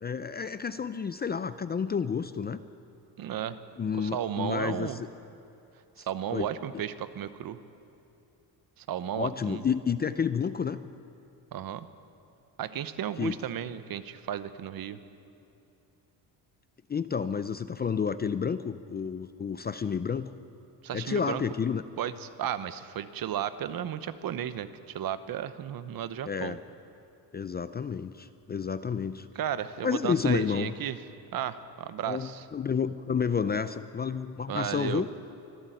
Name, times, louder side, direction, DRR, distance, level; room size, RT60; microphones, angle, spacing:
voice 1, 0.0-2.6 3.8-5.1 6.0-6.1 6.3-6.5 6.7-6.8 9.2-10.8 13.2-13.4 16.9-20.3 20.9-21.8 26.3-26.6 27.3-29.3 29.8-30.7 32.1-35.1, left 6 dB, 25° left, 13 dB, 0.4 m, -30 dB
voice 2, 3.2-3.6 3.9-5.0 6.0-7.6 8.8-9.6 11.5-11.9 12.6-15.0 20.8-21.4 22.0-26.6 29.3-31.0 31.3-32.4 34.5-35.0, right 10 dB, 55° right, 13 dB, 1.0 m, -34 dB
24.5 x 12.5 x 9.1 m, 2.9 s
cardioid pair, 150°, 42 cm